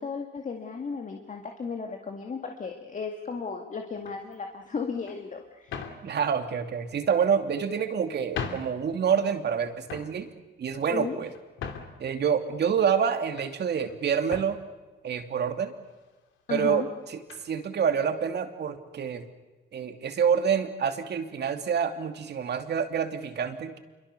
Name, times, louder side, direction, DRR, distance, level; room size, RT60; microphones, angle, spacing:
voice 1, 0.0-5.8 10.9-11.2 16.5-16.9, left 5 dB, 40° left, 3 dB, 2.3 m, -35 dB
sound 1, 4.0-4.4 5.1-5.2 5.7-6.1 7.0-7.6 8.1-8.2 8.3-8.8 9.2-9.5 9.8-10.2 10.8-12.1 12.7-13.5 13.8-14.0 14.3-14.6 15.4-15.5 15.8-16.0 17.3-17.5, left 6 dB, 75° left, 2.7 m, -39 dB
voice 2, 6.0-10.3 10.6-11.3 12.0-14.6 15.0-15.7 16.5-17.2 17.4-19.2 19.7-23.8, right 7 dB, 55° right, 7 dB, 2.8 m, -27 dB
27.0 x 23.5 x 6.9 m, 1.2 s
cardioid pair, 90°, 20 cm